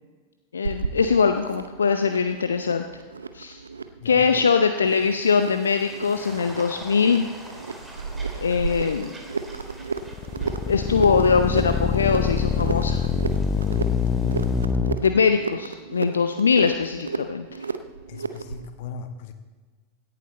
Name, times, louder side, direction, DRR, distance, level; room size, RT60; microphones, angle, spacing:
voice 1, 0.5-2.8 3.3-3.6 4.0-7.3 8.4-9.1 10.6-13.0 15.0-17.6, left 5 dB, 70° left, 8 dB, 0.6 m, -22 dB
sound 1, 0.6-18.7, right 4 dB, 75° right, 0.7 m, -34 dB
voice 2, 4.0-4.3 18.1-19.3, left 5 dB, 50° left, 9 dB, 1.3 m, -38 dB
sound 2, 4.9-14.7, right 1 dB, 10° right, 2.4 m, -45 dB
sound 3, 10.0-15.0, left 6 dB, 20° left, 0.7 m, -24 dB
17.0 x 11.0 x 4.1 m, 1.4 s
figure-of-eight pair, 90°, 0 cm